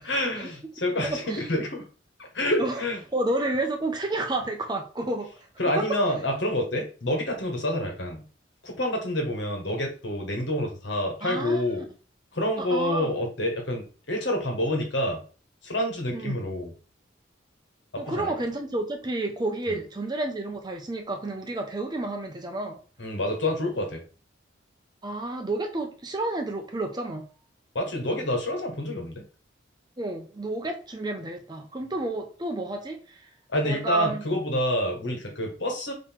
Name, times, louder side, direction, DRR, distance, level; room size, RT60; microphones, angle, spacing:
voice 1, 0.0-1.8 2.3-3.0 5.6-8.2 8.6-11.8 12.3-15.2 15.6-16.7 17.9-18.3 19.7-19.8 23.0-24.0 27.7-29.2 33.5-35.9, left 1 dB, 75° left, 1 dB, 1.5 m, -28 dB
voice 2, 1.0-1.5 2.6-2.8 3.1-5.3 5.8-5.9 11.2-11.8 12.6-13.1 16.1-16.4 18.0-22.8 25.0-27.3 30.0-33.2 33.6-34.2, right 2 dB, 20° right, 4 dB, 0.6 m, -30 dB
3.8 x 3.0 x 4.4 m, 0.37 s
head